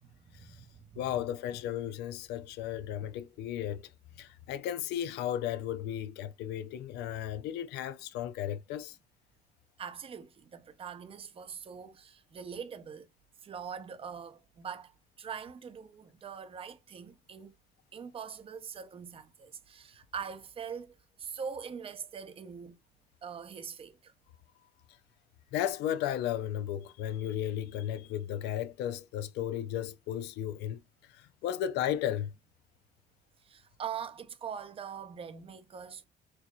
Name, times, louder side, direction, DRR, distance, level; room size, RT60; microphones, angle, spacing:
voice 1, 0.0-1.1 9.8-13.1 13.4-17.5 17.9-22.7 23.2-24.1 33.4-36.1, right 7 dB, 35° right, 0.6 m, -43 dB
voice 2, 1.0-3.8 4.2-9.0 25.5-30.8 31.4-32.3, left 11 dB, 85° left, 0.4 m, -34 dB
4.4 x 2.6 x 2.3 m
cardioid pair, 110°, 17 cm